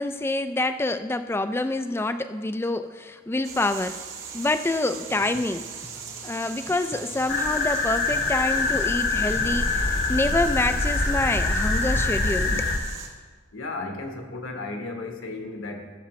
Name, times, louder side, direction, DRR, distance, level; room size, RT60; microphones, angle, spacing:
voice 1, 0.0-4.0 4.3-5.9 6.2-12.7, left 2 dB, 10° left, 10 dB, 0.3 m, -27 dB
sound 1, 3.4-13.1, right 6 dB, 70° right, 1.7 m, -39 dB
sound 2, 7.3-12.8, left 3 dB, 45° left, 0.9 m, -24 dB
voice 2, 13.5-15.9, left 3 dB, 70° left, 3 dB, 1.3 m, -34 dB
16.0 x 7.2 x 3.1 m, 1.5 s
head